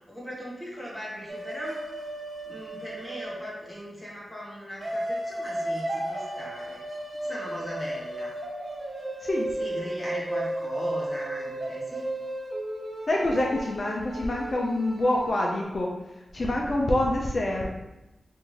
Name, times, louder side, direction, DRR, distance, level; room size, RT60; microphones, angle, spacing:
voice 1, 0.1-1.8 2.4-6.8 7.2-8.3 9.6-12.0, equal, ahead, -7 dB, 1.4 m, -38 dB
sound 1, 1.3-3.8 4.8-15.6, right 1 dB, 55° right, 0.6 m, -34 dB
voice 2, 13.1-15.9 16.3-17.7, left 1 dB, 50° left, -1 dB, 0.4 m, -26 dB
3.4 x 2.5 x 3.2 m, 0.98 s
wide cardioid pair, 80°, 0 cm